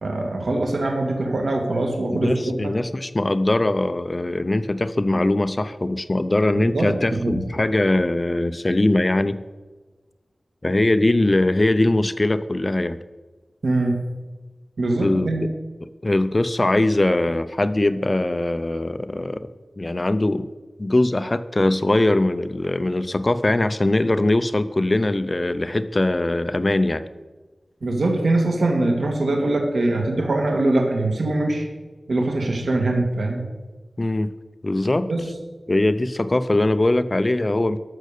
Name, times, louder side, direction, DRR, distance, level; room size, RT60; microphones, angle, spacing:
voice 1, 0.0-2.8 6.5-7.4 13.6-14.0 14.8-15.4 27.8-31.7 32.1-33.4 35.1-35.3, right 2 dB, 90° right, 2 dB, 1.9 m, -22 dB
voice 2, 2.1-9.4 10.6-13.0 15.0-15.3 15.8-19.5 19.8-20.5 20.8-27.0 34.0-34.3 34.6-35.1 35.7-37.8, left 2 dB, 35° left, 13 dB, 0.6 m, -21 dB
13.0 x 6.5 x 6.7 m, 1.3 s
wide cardioid pair, 75°, 0 cm